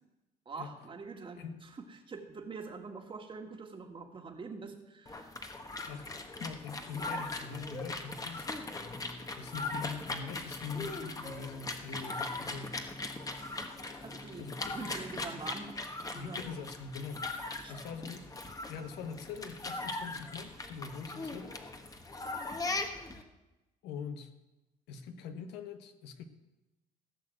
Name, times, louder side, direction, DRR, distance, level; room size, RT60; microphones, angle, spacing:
voice 1, 0.5-5.4 14.0-15.7 16.1-16.4 17.5-17.7, right 4 dB, 30° right, 4 dB, 1.9 m, -45 dB
sound 1, 5.1-23.2, left 2 dB, 20° left, 1.3 m, -40 dB
voice 2, 6.4-8.5 9.3-12.8 14.4-14.8 16.1-17.3 17.7-18.3 18.7-21.6 23.8-24.3 24.9-26.2, left 5 dB, 85° left, 8 dB, 1.4 m, -43 dB
16.0 x 6.5 x 7.8 m, 1.0 s
cardioid pair, 110°, 17 cm